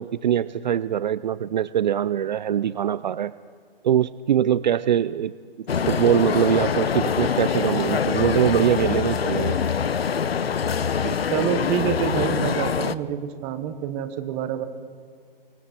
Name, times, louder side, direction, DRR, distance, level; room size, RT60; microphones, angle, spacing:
voice 1, 0.0-3.3 3.8-5.3 5.9-9.6 11.0-11.2, right 10 dB, 50° right, 16 dB, 0.5 m, -22 dB
sound 1, 5.7-12.9, left 7 dB, 90° left, 1.0 m, -24 dB
voice 2, 11.3-14.7, right 9 dB, 20° right, 9 dB, 1.2 m, -27 dB
26.0 x 23.0 x 4.5 m, 2.1 s
hypercardioid pair, 150°, 29 cm